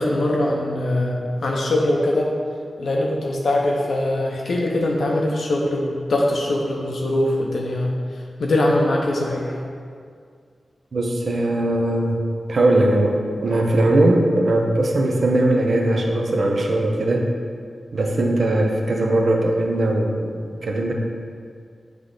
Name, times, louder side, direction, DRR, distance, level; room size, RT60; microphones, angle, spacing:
voice 1, 0.0-2.3 2.8-7.9 8.4-9.6, left 1 dB, 70° left, -1 dB, 0.7 m, -22 dB
voice 2, 10.9-12.2 12.5-17.3 17.9-20.9, right 1 dB, 50° right, 1 dB, 0.7 m, -20 dB
8.1 x 3.3 x 3.8 m, 2.1 s
wide cardioid pair, 155°, 0 cm